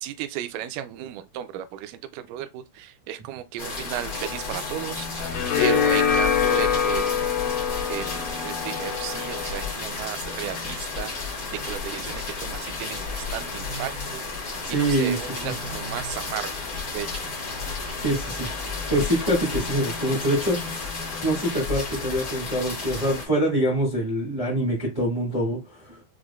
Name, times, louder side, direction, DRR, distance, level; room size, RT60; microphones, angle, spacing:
voice 1, 0.0-5.3 5.6-7.3 7.9-14.2 14.7-16.5 16.9-17.3, right 11 dB, 85° right, 1.8 m, -34 dB
sound 1, 3.6-23.2, left 4 dB, 65° left, 0.8 m, -32 dB
sound 2, 4.1-9.7, left 8 dB, 85° left, 1.7 m, -25 dB
voice 2, 14.6-15.2 15.4-15.5 18.0-18.5 18.9-20.8 21.2-26.0, right 1 dB, 55° right, 0.3 m, -25 dB
6.2 x 2.1 x 2.3 m
omnidirectional pair, 4.1 m